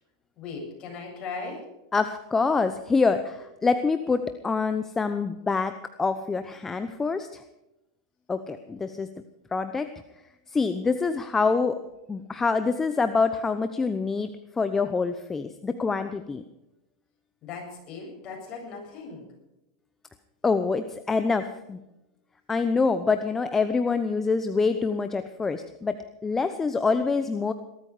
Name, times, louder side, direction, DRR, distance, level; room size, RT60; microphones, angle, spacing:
voice 1, 0.4-1.7 17.4-19.3, left 4 dB, 40° left, 0 dB, 7.9 m, -38 dB
voice 2, 1.9-5.7 6.0-7.4 8.3-9.1 9.5-9.9 10.5-11.8 12.1-14.3 14.6-16.4 20.4-21.8 22.5-26.0 26.2-27.5, left 4 dB, 15° left, 9 dB, 0.9 m, -26 dB
19.5 x 13.0 x 5.0 m, 0.93 s
supercardioid pair, 125°, 2 cm